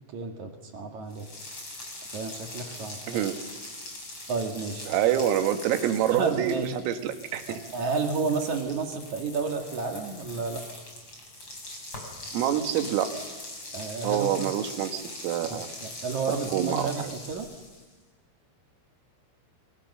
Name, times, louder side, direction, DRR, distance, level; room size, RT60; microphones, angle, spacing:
voice 1, 0.1-1.3 2.1-3.3 4.3-4.8 6.1-6.7 7.5-10.6 13.7-14.3 15.5-17.5, right 4 dB, 55° right, 4 dB, 2.3 m, -31 dB
sound 1, 1.1-17.9, left 2 dB, 25° left, 5.7 m, -42 dB
voice 2, 4.9-7.6 12.3-13.1 14.0-15.7 16.5-17.1, right 10 dB, 90° right, 7 dB, 4.2 m, -26 dB
28.0 x 22.5 x 6.7 m, 1.2 s
omnidirectional pair, 5.8 m